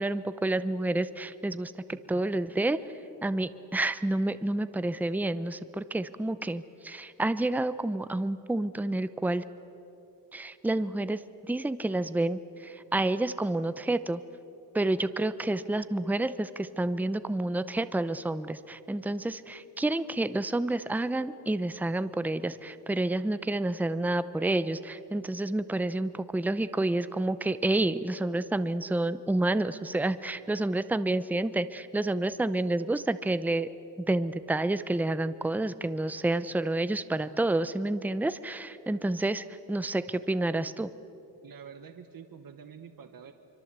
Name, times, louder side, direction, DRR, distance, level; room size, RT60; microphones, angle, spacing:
voice 1, 0.0-2.8 3.2-9.4 10.3-14.2 14.7-33.7 34.0-40.9, right 2 dB, 5° right, 13 dB, 0.6 m, -29 dB
voice 2, 1.9-2.4 41.4-43.3, right 7 dB, 50° right, 7 dB, 1.2 m, -48 dB
26.0 x 25.0 x 8.1 m, 2.9 s
wide cardioid pair, 145°, 43 cm